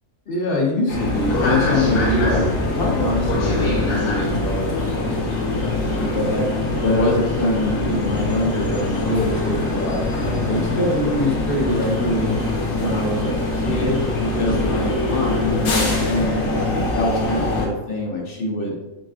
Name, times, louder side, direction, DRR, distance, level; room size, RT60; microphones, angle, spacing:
voice 1, 0.3-10.1 10.4-12.4 12.8-16.7 16.9-18.8, left 1 dB, 50° left, -1 dB, 0.8 m, -24 dB
sound 1, 0.9-17.7, left 2 dB, 65° left, 1.1 m, -23 dB
4.2 x 3.7 x 2.4 m, 0.96 s
omnidirectional pair, 1.5 m